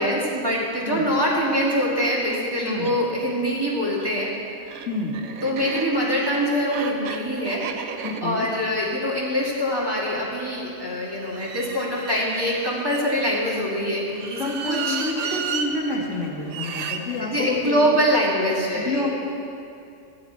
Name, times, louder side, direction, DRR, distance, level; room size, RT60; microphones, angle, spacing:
voice 1, 0.0-4.3 5.4-7.9 8.2-14.4 14.7-15.3 17.2-19.1, equal, 15° right, -6 dB, 1.9 m, -24 dB
sound 1, 1.3-1.4 1.7-1.8 2.0-2.9 3.9-10.0 11.2-13.5 14.1-15.7 16.5-17.0, right 6 dB, 85° right, 1.2 m, -34 dB
voice 2, 2.6-3.0 4.9-5.1 8.0-8.5 14.4-17.9 18.7-19.1, left 2 dB, 60° left, -4 dB, 2.0 m, -28 dB
14.5 x 9.4 x 4.5 m, 2.6 s
omnidirectional pair, 1.4 m